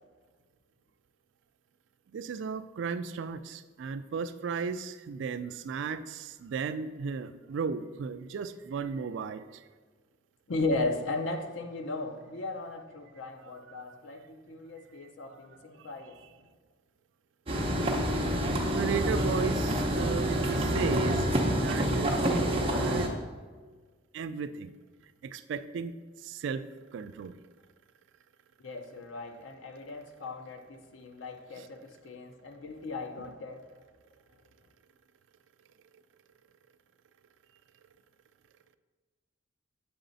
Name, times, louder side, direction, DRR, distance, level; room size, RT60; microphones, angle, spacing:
voice 1, 2.1-9.6 13.4-13.8 15.2-15.4 18.7-21.3 21.5-23.1 24.1-24.7 25.2-25.9 26.2-26.7 26.9-27.4 31.6-31.7, right 5 dB, 65° right, 12 dB, 0.3 m, -35 dB
voice 2, 10.5-16.2 28.6-33.6, left 2 dB, 70° left, 6 dB, 0.6 m, -36 dB
sound 1, 17.5-23.1, right 1 dB, 30° right, 0.7 m, -27 dB
7.8 x 4.0 x 3.9 m, 1.4 s
head